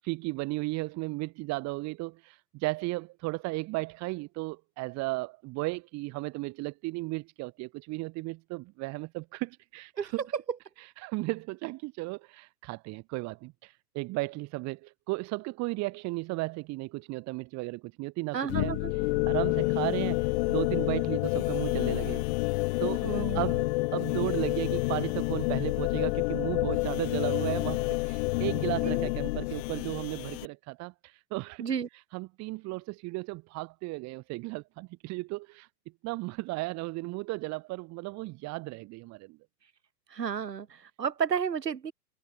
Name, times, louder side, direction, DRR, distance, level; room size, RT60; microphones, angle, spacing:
voice 1, 0.0-10.2 11.0-18.8 19.3-22.2 22.8-23.1 23.3-30.9 31.3-31.6 32.1-35.7 36.0-39.4, right 23 dB, 35° right, 4.4 m, -35 dB
voice 2, 10.0-10.4 18.3-18.9 23.0-23.5 28.8-29.1 31.6-31.9 40.1-41.9, right 7 dB, 90° right, 1.5 m, -32 dB
sound 1, 18.5-30.5, left 25 dB, 40° left, 2.2 m, -29 dB
hypercardioid pair, 120°, 48 cm